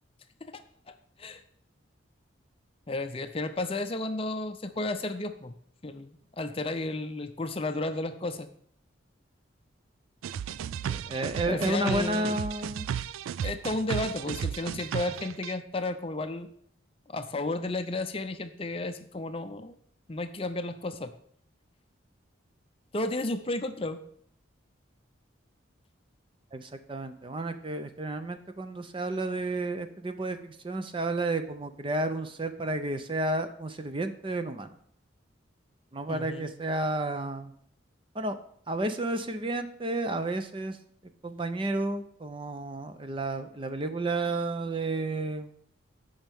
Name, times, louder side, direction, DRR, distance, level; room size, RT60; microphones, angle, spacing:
voice 1, 0.5-1.4 2.9-5.6 5.8-8.5 11.5-12.4 13.4-16.5 17.1-19.7 20.1-21.1 22.9-24.0 36.1-36.5, left 2 dB, 30° left, 8 dB, 0.5 m, -33 dB
sound 1, 10.2-15.5, right 8 dB, 85° right, 0.3 m, -34 dB
voice 2, 10.8-12.9 26.5-34.7 35.9-37.5 38.1-38.4 38.7-40.8 41.2-45.5, right 2 dB, 25° right, 9 dB, 0.5 m, -31 dB
15.0 x 5.5 x 3.6 m, 0.64 s
head